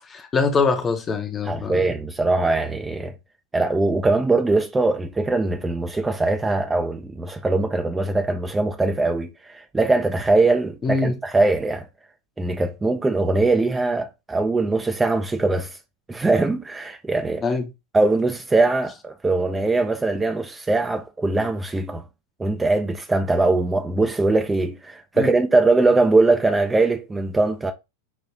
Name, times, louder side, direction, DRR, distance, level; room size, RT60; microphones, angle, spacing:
voice 1, 0.1-1.9 10.8-11.2 17.4-17.7 25.1-25.3, left 4 dB, 20° left, 0.8 m, -23 dB
voice 2, 1.4-3.1 3.5-11.9 12.4-15.8 16.1-17.6 17.9-22.0 22.4-27.7, right 2 dB, 10° right, 0.5 m, -21 dB
5.9 x 2.6 x 3.2 m
figure-of-eight pair, 90°, 0 cm